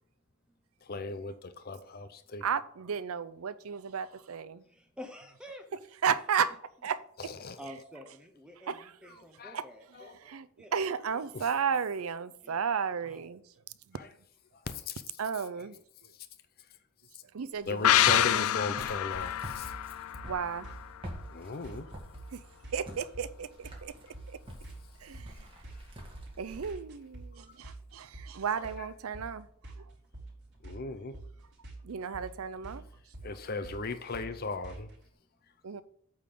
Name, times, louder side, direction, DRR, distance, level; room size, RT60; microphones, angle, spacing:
voice 1, 0.8-2.4 7.2-7.6 9.4-9.6 9.9-10.2 11.3-11.5 13.9-14.1 14.5-15.0 16.1-16.3 17.1-17.2 17.6-19.7 21.3-21.9 25.3-25.4 25.7-25.8 28.5-28.9 30.6-31.1 33.2-34.9, left 3 dB, 45° left, 10 dB, 0.6 m, -38 dB
voice 2, 2.4-4.6 6.0-6.5 6.8-7.0 8.7-8.9 9.5-9.6 10.2-10.5 10.7-13.4 13.9-14.0 15.2-15.8 17.3-18.5 20.2-20.7 22.3-22.4 22.7-23.9 24.3-24.4 25.0-25.5 26.4-29.5 31.8-32.9 35.6-35.8, right 6 dB, 85° right, 14 dB, 0.5 m, -33 dB
voice 3, 4.7-5.6 7.6-10.1 10.6-10.9 12.4-12.6 13.1-13.3, equal, 5° right, 4 dB, 0.7 m, -48 dB
Walk footsteps, 17.5-26.7, right 1 dB, 25° right, 1.8 m, -48 dB
sound 1, 17.8-21.3 21.6-21.7, left 12 dB, 85° left, 0.4 m, -28 dB
sound 2, 19.1-35.0, right 2 dB, 55° right, 3.4 m, -47 dB
8.7 x 3.7 x 6.8 m, 0.64 s
head